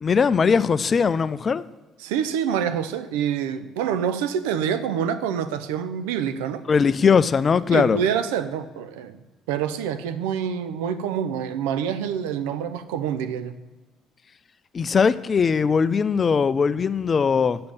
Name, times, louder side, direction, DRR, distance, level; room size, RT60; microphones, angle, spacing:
voice 1, 0.0-1.6 6.7-8.0 14.7-17.6, left 6 dB, 40° left, 0.4 m, -20 dB
voice 2, 2.0-6.6 7.7-9.2 9.5-13.5, right 8 dB, 90° right, 0.6 m, -26 dB
7.8 x 5.2 x 7.1 m
supercardioid pair, 75°, 0 cm